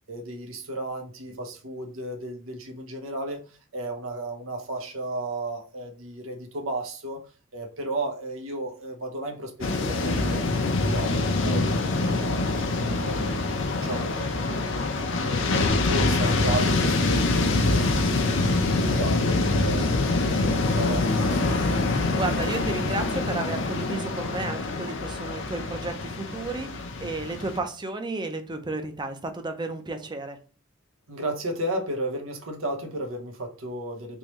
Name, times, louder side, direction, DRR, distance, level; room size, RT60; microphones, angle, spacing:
voice 1, 0.0-7.2 7.5-12.4 12.9-18.1 18.4-21.5 31.1-34.2, right 1 dB, 85° right, 3 dB, 1.0 m, -34 dB
sound 1, 9.6-27.6, left 2 dB, 65° left, 0.7 m, -25 dB
voice 2, 22.1-26.7 27.0-30.4, right 2 dB, 20° right, 6 dB, 0.6 m, -32 dB
3.7 x 3.1 x 3.0 m, 0.36 s
head